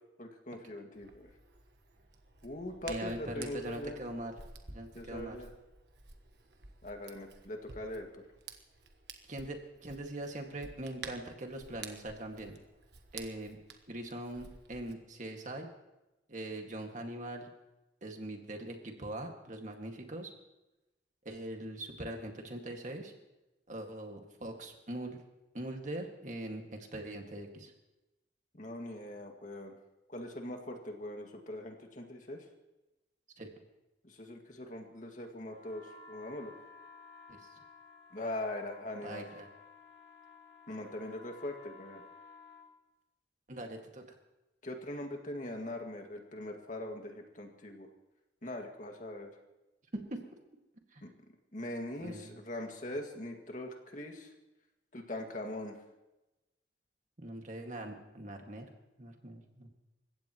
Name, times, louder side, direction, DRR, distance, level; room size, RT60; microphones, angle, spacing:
voice 1, 0.2-1.3 2.4-4.0 4.9-5.5 6.8-8.2 28.5-29.8 30.1-32.4 34.0-36.5 38.1-39.3 40.7-42.0 44.6-47.9 48.4-49.3 51.0-51.1 51.5-54.3 54.9-55.8, left 1 dB, 45° left, 2 dB, 2.0 m, -41 dB
Hands, 0.9-14.9, right 4 dB, 70° right, 1.4 m, -52 dB
voice 2, 2.9-4.4 4.7-5.4 9.3-12.5 13.1-13.6 13.9-15.7 16.3-17.5 18.0-20.3 21.3-23.1 23.7-25.2 25.5-27.7 33.4-33.5 37.3-37.4 39.0-39.5 43.5-44.0 49.9-50.2 50.9-51.0 52.0-52.4 57.2-58.7 59.0-59.7, right 1 dB, 45° right, 3 dB, 2.0 m, -42 dB
sound 1, 35.5-42.7, left 4 dB, 70° left, 2.5 m, -55 dB
29.0 x 15.5 x 3.1 m, 1.0 s
head